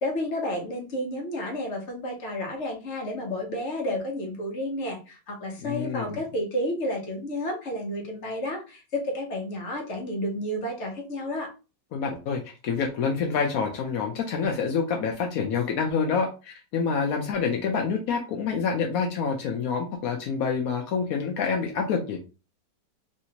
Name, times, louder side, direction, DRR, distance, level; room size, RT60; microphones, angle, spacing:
voice 1, 0.0-11.5, left 1 dB, 45° left, 1 dB, 1.1 m, -31 dB
voice 2, 5.6-6.2 11.9-22.2, left 5 dB, 75° left, 2 dB, 0.8 m, -27 dB
3.2 x 2.8 x 2.8 m, 0.31 s
omnidirectional pair, 2.0 m